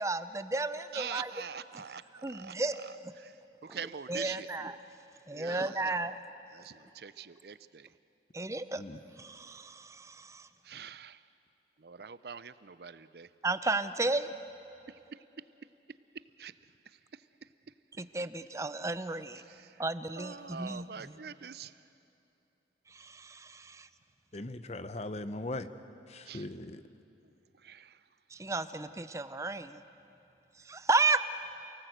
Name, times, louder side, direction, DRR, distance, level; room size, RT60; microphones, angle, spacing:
voice 1, 0.0-1.3 2.2-3.1 3.7-3.8 4.1-4.8 5.3-6.1 8.3-8.8 9.2-10.5 13.4-14.4 18.0-19.4 19.8-21.1 22.9-23.9 28.3-29.8 30.7-31.2, right 3 dB, 15° right, 12 dB, 0.6 m, -33 dB
voice 2, 0.9-2.6 3.2-3.3 3.6-4.5 5.3-5.9 6.5-7.9 10.6-11.2 11.8-13.3 14.9-15.2 16.4-16.5 19.5-19.8 20.2-21.7 26.3-26.5 27.6-28.0, right 7 dB, 60° right, 15 dB, 0.5 m, -44 dB
voice 3, 24.3-25.7 26.1-26.8, left 2 dB, 35° left, 11 dB, 0.7 m, -39 dB
28.5 x 18.5 x 8.0 m, 2.8 s
head